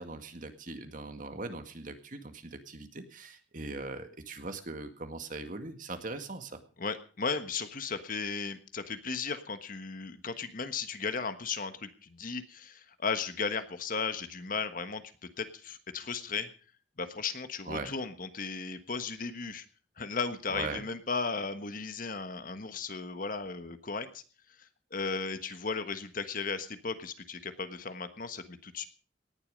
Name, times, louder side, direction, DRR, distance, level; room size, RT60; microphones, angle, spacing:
voice 1, 0.0-6.6 17.7-17.9 20.5-20.8, right 3 dB, 50° right, 7 dB, 2.0 m, -40 dB
voice 2, 6.8-15.0 15.4-16.5 17.0-19.6 20.0-24.2 24.6-28.8, left 4 dB, 50° left, 10 dB, 1.4 m, -35 dB
18.5 x 11.0 x 5.3 m, 0.39 s
head